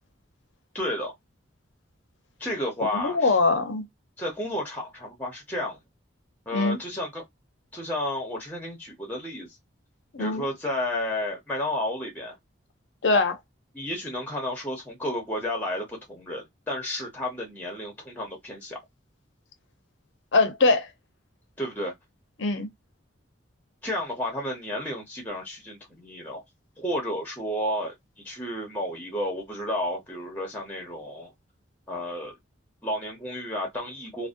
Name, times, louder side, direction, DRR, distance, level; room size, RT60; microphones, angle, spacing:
voice 1, 0.7-1.1 2.4-3.4 4.2-5.8 6.5-7.2 7.7-9.6 10.2-12.4 13.7-18.8 21.6-21.9 23.8-26.4 26.8-27.9 28.2-31.3 31.9-32.3 32.8-34.3, left 1 dB, 10° left, 0.7 m, -32 dB
voice 2, 2.9-3.9 6.5-6.8 10.1-10.4 13.0-13.4 20.3-20.9 22.4-22.7, left 3 dB, 65° left, 0.6 m, -22 dB
2.6 x 2.0 x 2.4 m
head